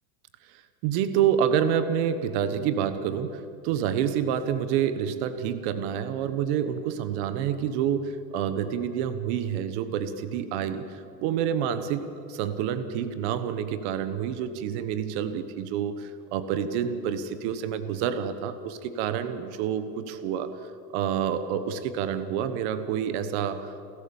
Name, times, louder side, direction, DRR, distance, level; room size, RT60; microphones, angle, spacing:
voice 1, 0.8-12.0 12.3-20.5 20.9-23.9, right 8 dB, 40° right, 11 dB, 1.3 m, -28 dB
29.0 x 13.5 x 7.2 m, 2.4 s
supercardioid pair, 170°, 49 cm